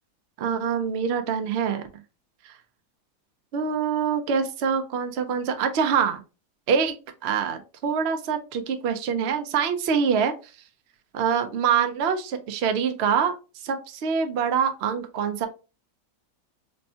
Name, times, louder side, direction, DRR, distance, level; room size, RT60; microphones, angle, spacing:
voice 1, 0.4-1.9 2.4-2.5 3.5-6.2 6.7-7.0 7.2-10.3 11.1-13.4 13.6-15.5, right 6 dB, 65° right, 6 dB, 0.7 m, -25 dB
4.4 x 2.1 x 2.7 m, 0.31 s
omnidirectional pair, 1.6 m